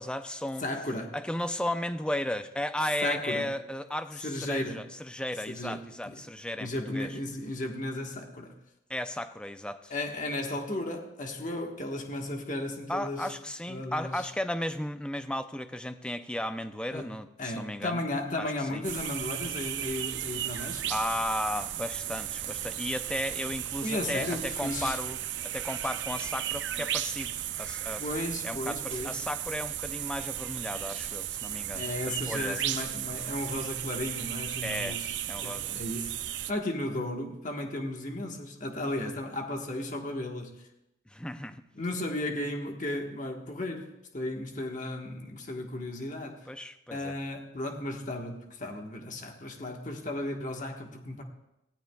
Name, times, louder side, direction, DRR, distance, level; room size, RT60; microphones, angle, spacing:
voice 1, 0.0-0.6 1.1-7.1 8.9-9.9 12.9-18.0 18.4-18.8 20.9-25.2 25.4-28.0 28.4-32.7 34.6-35.0 35.2-35.8 41.1-41.6 46.5-47.2, left 1 dB, 5° left, 0.5 m, -35 dB
voice 2, 0.6-1.1 3.0-3.5 4.2-4.8 5.5-6.2 6.6-8.5 9.9-13.3 13.7-14.3 16.9-17.1 17.4-20.9 23.8-25.0 28.0-29.2 31.7-35.2 35.4-36.2 36.5-40.6 41.7-46.5 46.9-51.2, left 1 dB, 40° left, 1.4 m, -35 dB
sound 1, 18.8-36.5, right 12 dB, 65° right, 0.5 m, -35 dB
24.0 x 16.5 x 2.3 m
head